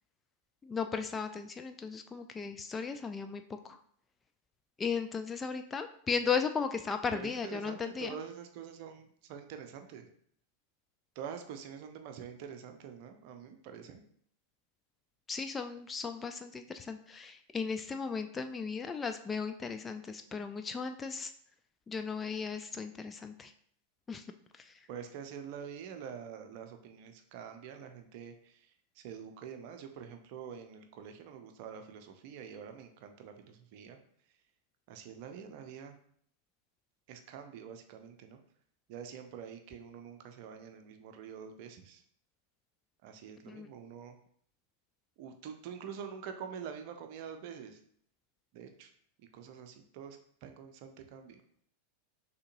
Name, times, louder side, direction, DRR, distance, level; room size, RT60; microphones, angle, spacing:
voice 1, 0.6-3.8 4.8-8.2 15.3-21.3 21.9-23.5 24.1-24.2 43.5-43.7, left 5 dB, 15° left, 8 dB, 0.3 m, -36 dB
voice 2, 7.1-10.1 11.2-14.0 24.9-28.5 29.0-34.0 34.9-35.9 37.1-38.4 38.9-42.0 43.0-44.2 45.2-47.8 48.5-48.9 49.3-51.4, right 7 dB, 45° right, 6 dB, 0.6 m, -46 dB
6.4 x 2.8 x 2.6 m, 0.62 s
figure-of-eight pair, 90°, 0 cm